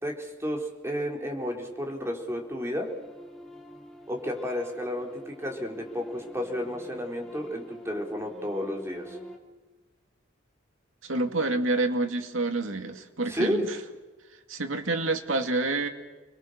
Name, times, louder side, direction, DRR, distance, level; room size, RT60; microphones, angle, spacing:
voice 1, 0.0-2.9 4.1-9.2 13.3-13.6, equal, 15° right, 1 dB, 4.2 m, -32 dB
sound 1, 2.4-9.4, equal, ahead, 3.0 m, -46 dB
voice 2, 11.0-13.8 14.5-15.9, right 2 dB, 75° right, 5 dB, 2.5 m, -28 dB
30.0 x 22.0 x 6.8 m, 1.2 s
head